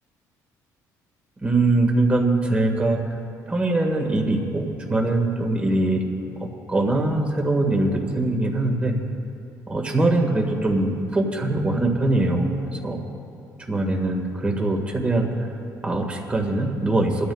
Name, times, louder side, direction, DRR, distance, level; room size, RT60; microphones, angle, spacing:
voice 1, 1.4-3.0 3.5-6.0 6.7-8.9 9.7-13.0 13.7-15.3 15.8-17.3, right 2 dB, 15° right, 1 dB, 1.6 m, -22 dB
23.5 x 13.0 x 2.3 m, 2.6 s
cardioid pair, 150°, 7 cm